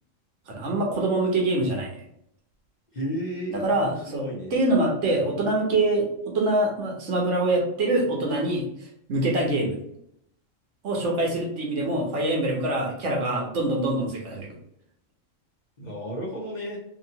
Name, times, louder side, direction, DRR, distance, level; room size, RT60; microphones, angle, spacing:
voice 1, 0.5-1.9 3.5-6.1 6.3-9.8 10.8-14.5, right 2 dB, 65° right, -1 dB, 1.1 m, -25 dB
voice 2, 2.9-4.6 15.8-16.8, equal, 40° left, -5 dB, 0.8 m, -33 dB
2.8 x 2.7 x 2.7 m, 0.74 s
omnidirectional pair, 1.4 m